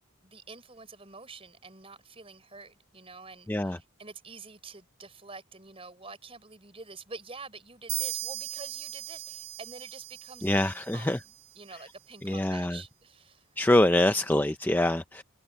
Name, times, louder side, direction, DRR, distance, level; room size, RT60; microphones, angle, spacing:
voice 1, 0.2-11.1 11.6-13.5 14.2-14.3, right 3 dB, 25° right, 5.2 m, -47 dB
voice 2, 3.5-3.8 10.4-11.2 12.2-12.8 13.6-15.2, left 1 dB, 10° left, 0.4 m, -25 dB
sound 1, 7.9-11.5, right 15 dB, 50° right, 1.4 m, -38 dB
head